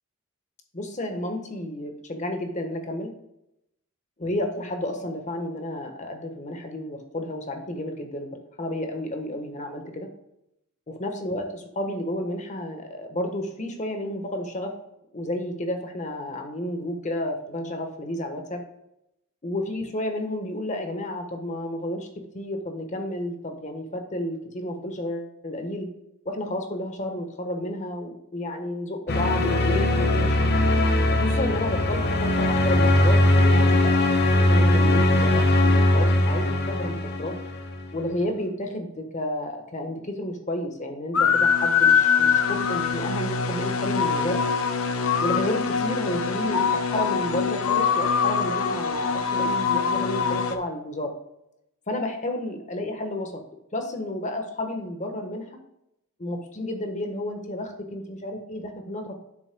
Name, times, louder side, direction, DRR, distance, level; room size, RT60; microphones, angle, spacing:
voice 1, 0.7-3.1 4.2-8.3 8.6-10.1 10.9-14.7 15.1-18.6 19.4-22.1 22.3-25.9 26.2-30.5 31.2-37.3 37.9-44.4 45.2-51.1 51.9-53.3 53.7-55.4 56.2-59.1, left 1 dB, 35° left, 4 dB, 1.3 m, -31 dB
sound 1, 29.1-37.9, left 1 dB, 50° left, 1.0 m, -20 dB
sound 2, 41.1-50.6, left 6 dB, 80° left, 0.7 m, -23 dB
9.8 x 7.2 x 2.3 m, 0.84 s
head